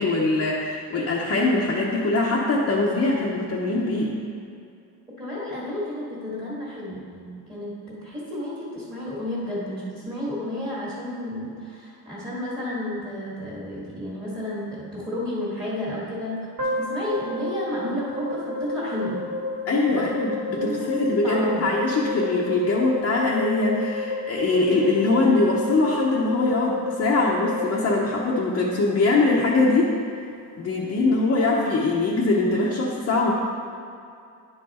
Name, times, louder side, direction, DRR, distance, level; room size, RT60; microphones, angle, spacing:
voice 1, 0.0-4.2 19.7-29.9 30.6-33.3, left 2 dB, 40° left, -4 dB, 0.8 m, -22 dB
voice 2, 5.2-19.2 19.9-20.2 20.5-21.7, left 1 dB, 15° right, -8 dB, 1.9 m, -31 dB
sound 1, 16.6-28.8, left 3 dB, 50° right, 1.9 m, -31 dB
10.5 x 4.6 x 4.2 m, 2.5 s
cardioid pair, 140°, 36 cm